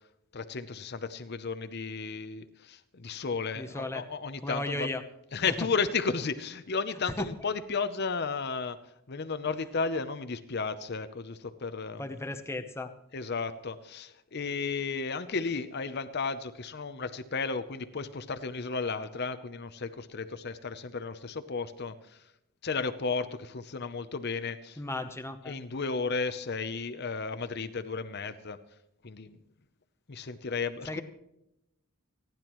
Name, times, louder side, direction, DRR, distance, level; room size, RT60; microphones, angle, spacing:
voice 1, 0.3-4.9 5.3-8.8 9.1-12.1 13.1-22.2 22.6-24.8 25.5-28.6 29.0-29.4 30.1-31.0, left 4 dB, 50° left, 10 dB, 0.7 m, -33 dB
voice 2, 3.6-4.0 4.4-5.0 5.6-5.7 7.2-7.3 12.0-12.9 24.8-25.6 30.9-31.0, left 2 dB, 10° left, 7 dB, 0.9 m, -35 dB
29.0 x 10.5 x 3.1 m, 0.86 s
head